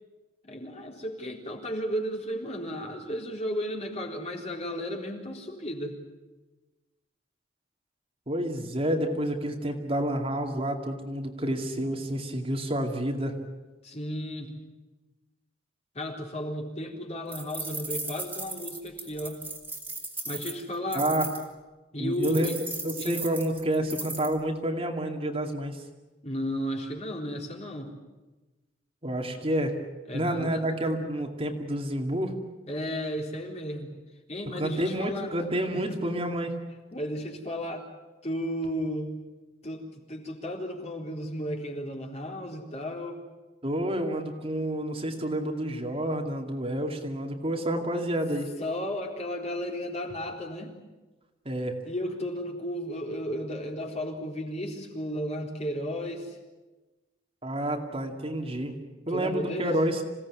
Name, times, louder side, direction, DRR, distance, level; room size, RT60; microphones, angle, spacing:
voice 1, 0.5-6.0 13.8-14.6 15.9-19.5 20.2-21.1 21.9-22.6 23.0-23.1 26.2-27.9 30.1-30.7 32.7-34.0 34.3-35.3 35.7-36.0 36.9-37.9 38.2-39.2 39.6-43.2 48.6-50.8 51.8-56.4 59.1-59.7, equal, 35° left, 1 dB, 4.0 m, -34 dB
voice 2, 8.3-13.4 20.9-21.3 22.0-22.5 22.8-25.8 29.0-29.8 30.1-32.3 34.5-36.5 43.6-48.5 51.5-51.7 57.4-58.7 59.1-60.0, right 1 dB, 30° right, 3 dB, 2.4 m, -29 dB
sound 1, 17.3-21.4 22.2-24.3, right 3 dB, 10° right, 3.1 m, -37 dB
27.0 x 17.5 x 9.7 m, 1.2 s
head